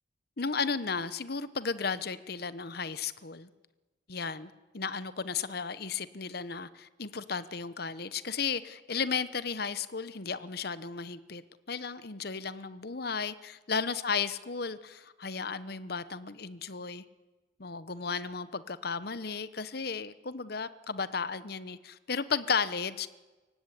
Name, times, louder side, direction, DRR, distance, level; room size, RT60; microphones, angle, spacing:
voice 1, 0.4-3.5 4.1-11.4 11.7-17.0 17.6-23.1, left 5 dB, 55° left, 14 dB, 1.0 m, -34 dB
24.0 x 16.5 x 10.0 m, 1.2 s
head